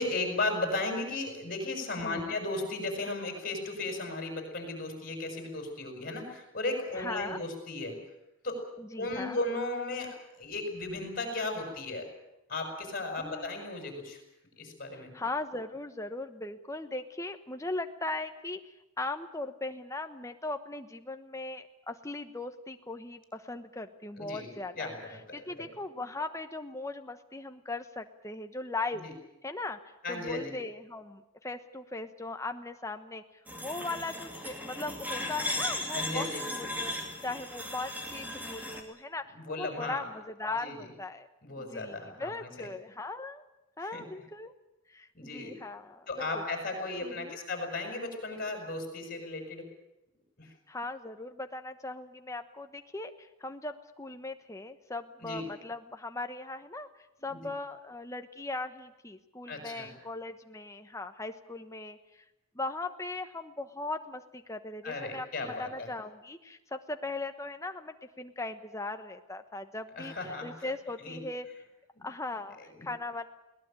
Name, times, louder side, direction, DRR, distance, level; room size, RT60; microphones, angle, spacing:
voice 1, 0.0-8.0 8.4-8.7 9.0-12.1 12.5-14.2 14.6-15.1 24.2-25.7 29.0-29.1 30.0-30.6 35.9-36.4 39.3-40.1 40.6-40.8 41.4-42.7 43.8-44.0 45.1-45.5 46.1-49.7 50.4-50.5 55.2-55.4 57.3-57.5 59.5-59.9 64.8-65.9 69.9-70.7 71.0-71.2 71.9-72.0 72.8-72.9, left 2 dB, 40° left, 3 dB, 6.5 m, -35 dB
voice 2, 2.0-2.3 6.9-7.4 8.8-9.4 13.2-13.6 15.1-29.1 29.4-33.2 33.6-41.3 41.6-43.4 43.8-44.5 44.9-46.4 47.0-47.4 50.7-56.9 57.2-62.2 62.5-71.5 72.0-73.3, left 2 dB, 15° left, 7 dB, 1.1 m, -39 dB
sound 1, 33.5-38.8, left 1 dB, 10° right, 2.5 m, -36 dB
21.5 x 19.0 x 9.0 m, 0.93 s
head